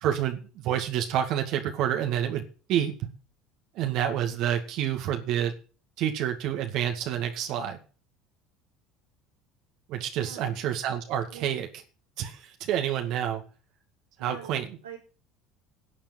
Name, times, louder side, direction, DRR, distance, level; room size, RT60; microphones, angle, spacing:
voice 1, 0.0-2.4 2.7-2.9 3.8-5.5 6.0-7.8 9.9-11.7 12.2-13.4 14.2-14.6, right 10 dB, 60° right, 4 dB, 2.1 m, -28 dB
voice 2, 10.1-10.6 11.3-11.6 14.2-15.0, right 7 dB, 85° right, -6 dB, 4.6 m, -44 dB
11.5 x 7.4 x 7.7 m, 0.37 s
hypercardioid pair, 70°, 0 cm